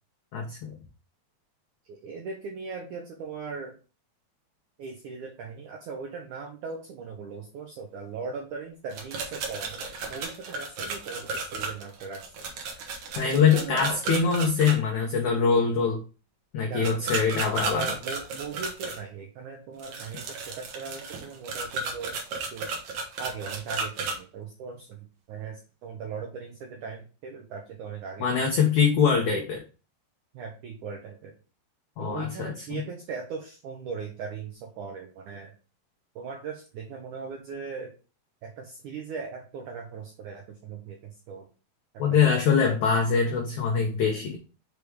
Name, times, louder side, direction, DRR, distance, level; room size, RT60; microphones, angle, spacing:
voice 1, 0.3-0.7 13.2-16.0 16.5-17.9 28.2-29.6 32.0-32.8 42.0-44.4, left 6 dB, 85° left, 0 dB, 1.7 m, -23 dB
voice 2, 1.9-3.8 4.8-12.2 13.3-14.0 16.7-17.1 17.6-22.2 22.5-22.7 23.2-28.3 30.3-31.3 32.0-35.5 36.2-37.9 38.4-41.5 42.1-42.3, right 5 dB, 80° right, 1 dB, 1.7 m, -39 dB
sound 1, 8.9-14.7 16.8-19.0 19.8-24.2, right 4 dB, 65° right, 1.9 m, -33 dB
6.7 x 3.5 x 4.7 m, 0.35 s
omnidirectional pair, 4.8 m